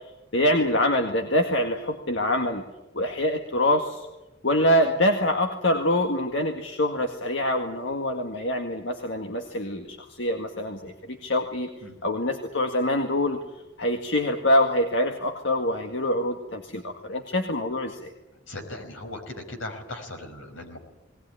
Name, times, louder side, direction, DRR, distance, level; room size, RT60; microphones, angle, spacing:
voice 1, 0.3-2.6 2.9-4.1 4.4-11.7 12.0-13.4 13.8-18.1, left 1 dB, 65° left, 4 dB, 1.9 m, -25 dB
voice 2, 18.5-20.8, left 1 dB, 85° left, 4 dB, 5.3 m, -38 dB
20.0 x 19.5 x 9.9 m, 1.0 s
head